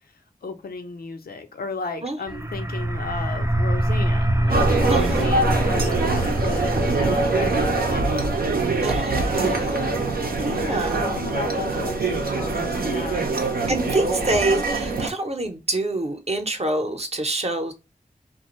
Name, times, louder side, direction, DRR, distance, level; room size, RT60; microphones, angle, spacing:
voice 1, 0.4-8.5 9.3-10.0 10.4-13.2, left 4 dB, 85° left, 0.6 m, -35 dB
voice 2, 2.0-2.5 4.9-5.3 8.8-9.8 10.3-11.2 13.7-17.7, right 2 dB, 45° right, 0.7 m, -27 dB
sound 1, 2.3-13.7, right 1 dB, 20° right, 0.4 m, -27 dB
sound 2, 4.5-15.1, right 3 dB, 80° right, 0.6 m, -24 dB
2.5 x 2.2 x 3.0 m
cardioid pair, 40°, 15 cm